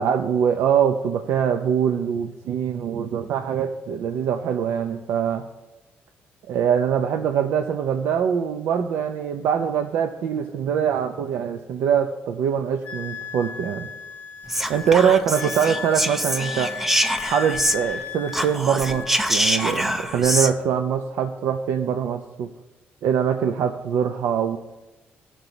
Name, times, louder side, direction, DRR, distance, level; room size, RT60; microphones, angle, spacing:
voice 1, 0.0-5.4 6.5-13.9 14.7-16.7 17.3-22.5 23.0-24.6, right 8 dB, 85° right, 7 dB, 0.5 m, -23 dB
Wind instrument woodwind instrument, 12.8-19.3 19.6-20.2, left 7 dB, 40° left, 0.6 m, -35 dB
Whispering, 14.5-18.0 18.3-20.5, equal, 5° right, 0.5 m, -25 dB
15.5 x 6.1 x 3.9 m, 1.1 s
cardioid pair, 140°, 4 cm